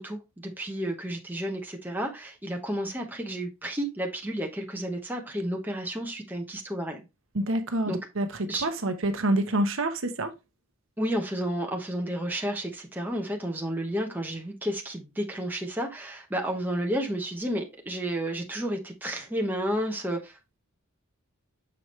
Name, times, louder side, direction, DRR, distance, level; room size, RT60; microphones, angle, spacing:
voice 1, 0.0-7.0 7.9-8.0 8.5-8.7 11.0-20.6, right 1 dB, 10° right, 0.9 m, -31 dB
voice 2, 7.3-10.3, right 1 dB, 65° right, 0.9 m, -27 dB
6.9 x 4.8 x 3.1 m
head